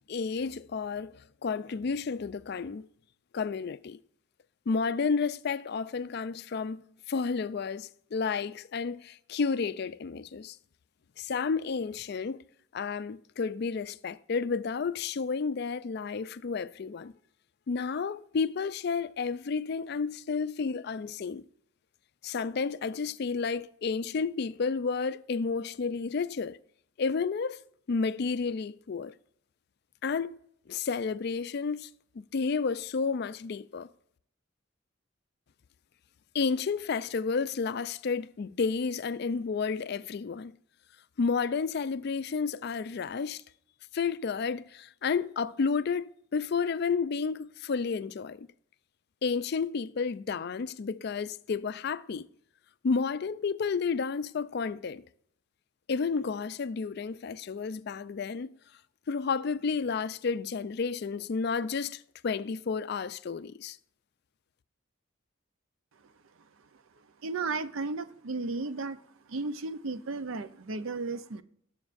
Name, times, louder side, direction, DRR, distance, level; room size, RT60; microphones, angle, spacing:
voice 1, 0.1-1.1 1.4-2.9 3.3-4.0 4.7-6.8 7.1-10.6 11.2-12.4 12.7-17.1 17.7-21.4 22.2-26.6 27.0-27.6 27.9-29.1 30.0-30.4 30.7-31.9 32.2-33.9 36.3-40.5 41.2-43.4 43.9-48.5 49.2-52.3 52.8-55.0 55.9-58.5 59.1-63.8, left 5 dB, 55° left, 0.4 m, -31 dB
voice 2, 67.2-69.0 69.3-71.4, right 3 dB, 85° right, 0.6 m, -34 dB
18.5 x 7.1 x 2.5 m
head